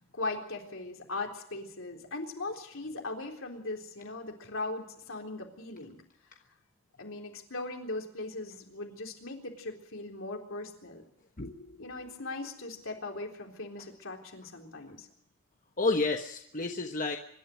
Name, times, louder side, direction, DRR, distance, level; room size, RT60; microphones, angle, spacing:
voice 1, 0.1-6.0 7.0-11.0 11.8-15.1, left 2 dB, 65° left, 2 dB, 3.8 m, -39 dB
voice 2, 11.4-12.1 15.8-17.2, left 3 dB, 40° left, 3 dB, 1.3 m, -31 dB
25.0 x 12.0 x 9.6 m, 0.74 s
head